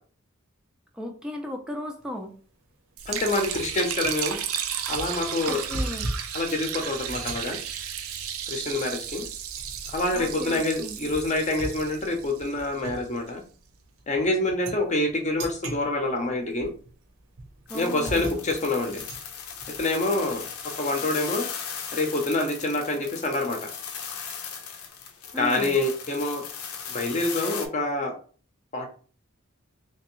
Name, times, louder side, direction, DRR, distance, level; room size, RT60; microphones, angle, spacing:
voice 1, 0.9-2.3 5.5-6.1 10.1-11.0 17.7-18.4 25.3-25.8, left 1 dB, 5° right, 2 dB, 0.4 m, -35 dB
sound 1, 2.0-2.3 2.7-2.8 3.6-20.7, right 2 dB, 70° right, 0.9 m, -39 dB
Liquid, 3.0-13.2, right 8 dB, 85° right, 0.5 m, -34 dB
voice 2, 3.1-4.4 4.9-5.6 6.3-7.6 8.5-9.2 9.9-13.4 14.1-16.7 17.7-19.0 19.8-20.4 20.8-21.5 21.9-23.7 25.3-26.4 26.9-28.1 28.7-28.9, left 2 dB, 35° left, 3 dB, 0.7 m, -26 dB
sound 2, 17.7-27.7, left 7 dB, 90° left, 0.7 m, -37 dB
3.4 x 3.0 x 3.0 m, 0.41 s
head